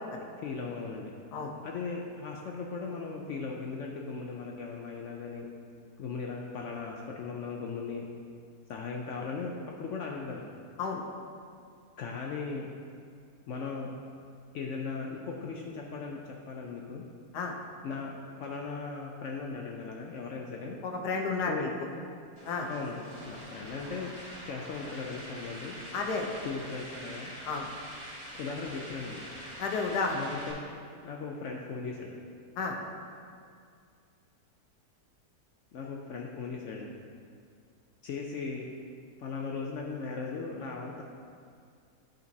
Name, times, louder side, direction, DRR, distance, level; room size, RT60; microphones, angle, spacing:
voice 1, 0.4-1.2 1.6-5.5 6.0-8.1 8.7-9.5 9.8-10.5 12.0-12.7 13.5-13.9 14.5-17.0 17.8-20.8 21.5-21.7 22.7-24.1 24.4-25.8 26.4-27.3 28.4-29.3 30.1-30.6 31.0-32.2 35.7-37.0 38.0-38.7 39.2-41.0, left 4 dB, 65° left, 0 dB, 0.7 m, -38 dB
voice 2, 20.8-21.7 22.4-22.7 25.9-26.3 27.5-27.7 29.6-30.2 32.6-32.8, left 4 dB, 85° left, 2 dB, 1.4 m, -31 dB
sound 1, 22.4-30.5, equal, 85° right, 2.6 m, -45 dB
10.5 x 5.2 x 2.7 m, 2.3 s
omnidirectional pair, 1.7 m